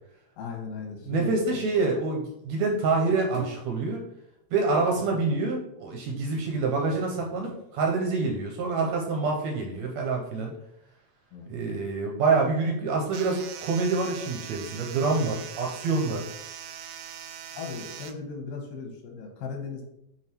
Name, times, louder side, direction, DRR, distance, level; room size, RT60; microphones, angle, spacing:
voice 1, 0.4-1.6 11.3-11.5 17.5-19.8, left 5 dB, 90° left, 2 dB, 2.9 m, -37 dB
voice 2, 1.1-4.0 4.5-10.5 11.5-16.3, right 3 dB, 75° right, 1 dB, 1.8 m, -26 dB
sound 1, 3.3-3.8 6.4-7.7 8.3-8.4, right 2 dB, 30° right, 1.1 m, -45 dB
sound 2, 13.1-18.1, right 9 dB, 90° right, 2.3 m, -41 dB
6.8 x 3.4 x 4.4 m, 0.78 s
omnidirectional pair, 3.8 m